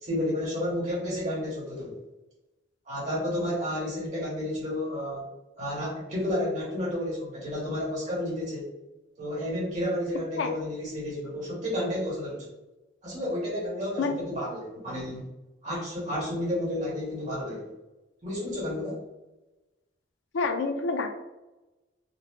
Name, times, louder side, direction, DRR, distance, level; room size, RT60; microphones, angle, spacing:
voice 1, 0.0-2.0 2.8-5.3 5.6-8.7 9.2-12.5 13.0-15.2 15.6-17.7 18.2-19.0, left 1 dB, 40° right, -5 dB, 1.5 m, -31 dB
voice 2, 20.3-21.1, left 4 dB, 80° left, 6 dB, 0.4 m, -27 dB
4.0 x 2.1 x 3.1 m, 1.0 s
head